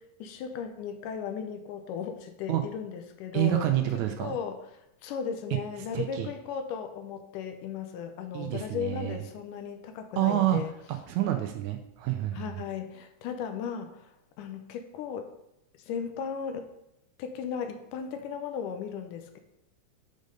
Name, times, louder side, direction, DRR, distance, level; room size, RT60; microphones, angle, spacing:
voice 1, 0.0-3.7 4.2-4.6 5.0-10.7 12.3-15.3 15.8-16.7 17.2-19.4, left 7 dB, 85° left, 7 dB, 2.2 m, -36 dB
voice 2, 3.3-4.4 5.9-6.3 8.3-9.2 10.2-10.6 10.9-12.5, right 13 dB, 80° right, 6 dB, 1.8 m, -28 dB
6.5 x 5.3 x 5.2 m, 0.84 s
omnidirectional pair, 3.7 m